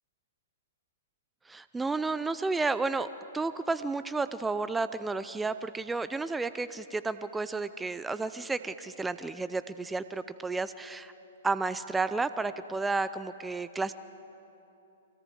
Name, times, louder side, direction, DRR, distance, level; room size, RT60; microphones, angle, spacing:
voice 1, 1.5-3.1 3.3-11.1 11.4-13.9, right 3 dB, 10° right, 13 dB, 0.5 m, -32 dB
24.0 x 17.5 x 6.4 m, 2.9 s
figure-of-eight pair, 115°, 0 cm